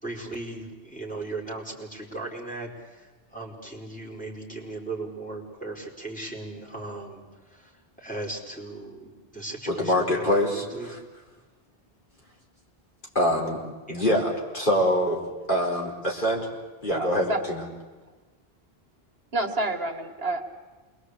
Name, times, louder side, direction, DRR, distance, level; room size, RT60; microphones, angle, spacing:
voice 1, 0.0-11.0 13.9-14.1, right 2 dB, 10° left, -3 dB, 4.7 m, -37 dB
voice 2, 9.7-11.0 13.1-13.6 13.9-16.5 16.8-17.7, equal, 55° left, -1 dB, 4.5 m, -25 dB
voice 3, 16.9-17.4 19.3-20.4, right 2 dB, 75° right, 5 dB, 2.3 m, -28 dB
28.0 x 22.0 x 8.3 m, 1.3 s
omnidirectional pair, 1.0 m